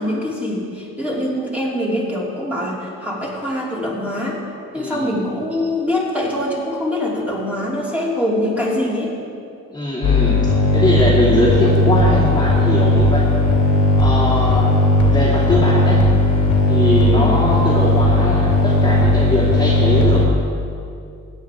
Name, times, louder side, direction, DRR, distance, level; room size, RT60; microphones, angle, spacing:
voice 1, 0.0-4.4 4.7-9.1 17.0-17.3, left 1 dB, 5° right, -6 dB, 3.2 m, -23 dB
voice 2, 4.7-5.2 9.7-13.3 14.0-14.7 15.1-16.1 16.7-20.2, left 1 dB, 15° left, -8 dB, 2.7 m, -21 dB
sound 1, 10.0-20.3, left 1 dB, 75° left, 2.5 m, -16 dB
16.5 x 9.6 x 3.7 m, 2.4 s
cardioid pair, 90°, 30 cm